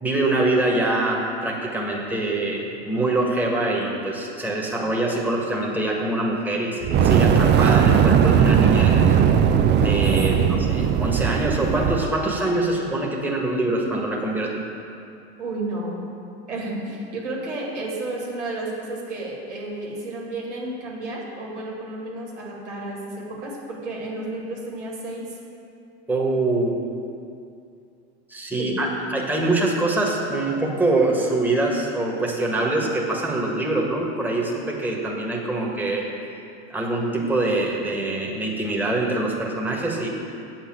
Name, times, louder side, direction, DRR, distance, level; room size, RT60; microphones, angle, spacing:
voice 1, 0.0-9.1 9.8-14.6 26.1-26.8 28.3-36.1 36.7-40.1, right 2 dB, 5° right, -2 dB, 1.6 m, -24 dB
Fire, 6.8-12.1, right 8 dB, 30° right, 0.5 m, -18 dB
voice 2, 10.2-10.7 15.4-16.0 16.5-25.3 28.6-28.8, right 2 dB, 85° right, -3 dB, 2.2 m, -32 dB
8.1 x 5.9 x 7.6 m, 2.5 s
hypercardioid pair, 90°, 35 cm